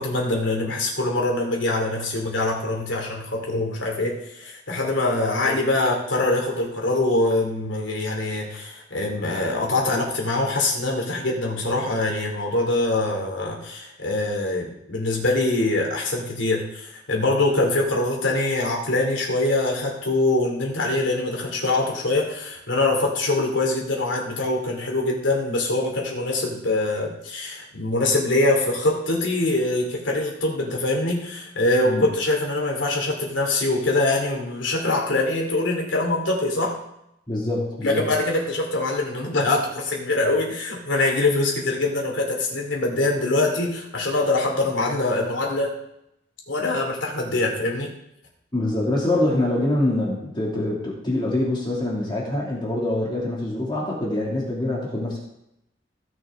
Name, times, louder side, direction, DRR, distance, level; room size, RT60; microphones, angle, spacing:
voice 1, 0.0-36.7 37.8-45.7 46.5-47.9, left 2 dB, 85° left, -1 dB, 2.7 m, -23 dB
voice 2, 37.3-38.1 48.5-55.2, left 1 dB, 25° left, -4 dB, 2.5 m, -24 dB
16.5 x 6.2 x 3.7 m, 0.81 s
head